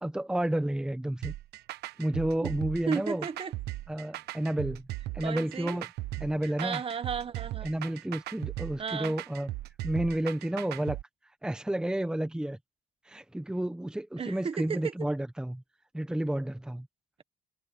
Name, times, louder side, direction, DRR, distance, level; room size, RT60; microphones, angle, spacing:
voice 1, 0.0-1.3 2.0-3.3 3.9-4.8 5.1-5.9 6.2-6.8 7.6-9.5 9.8-11.0 11.4-12.6 13.0-15.6 15.9-16.9, right 1 dB, 5° right, 1.0 m, -31 dB
sound 1, 1.2-11.0, right 16 dB, 75° right, 1.2 m, -38 dB
voice 2, 2.9-3.5 5.2-5.8 6.6-7.7 8.8-9.2 14.2-14.9, right 6 dB, 35° right, 1.5 m, -34 dB
cardioid pair, 110°, 17 cm